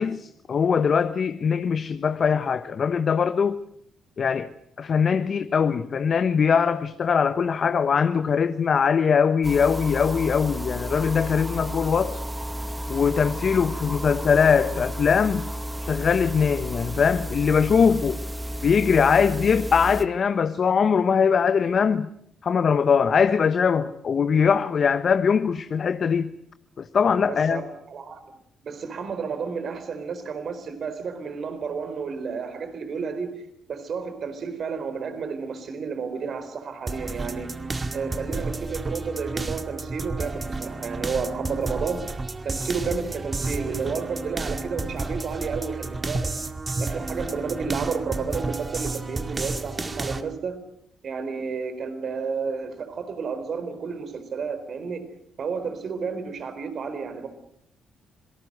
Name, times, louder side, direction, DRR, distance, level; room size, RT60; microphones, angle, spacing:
voice 1, 0.0-3.6 4.2-4.5 4.8-12.2 12.9-15.4 15.9-18.2 18.6-22.1 22.4-26.3 26.8-27.6, left 6 dB, 55° left, 1.0 m, -21 dB
sound 1, 9.4-20.1, equal, 15° right, 1.9 m, -32 dB
voice 2, 27.3-28.4 28.6-33.3 33.7-37.5 37.9-42.0 42.4-46.3 46.8-50.6 51.0-55.0 55.4-57.3, right 5 dB, 60° right, 4.1 m, -31 dB
sound 2, 36.9-50.2, right 3 dB, 35° right, 2.1 m, -31 dB
26.5 x 18.5 x 8.0 m
supercardioid pair, 55°, 0 cm